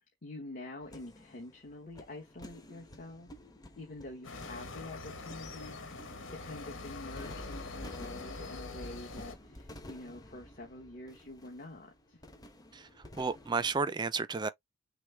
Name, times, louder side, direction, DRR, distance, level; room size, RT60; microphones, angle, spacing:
voice 1, 0.2-3.3 3.8-12.2, left 2 dB, 45° left, 1.2 m, -47 dB
sound 1, 0.8-13.8, left 1 dB, 20° left, 0.8 m, -52 dB
sound 2, 4.2-9.4, left 3 dB, 90° left, 1.3 m, -44 dB
voice 2, 13.2-14.5, right 4 dB, 20° right, 0.3 m, -32 dB
6.2 x 2.1 x 3.3 m
head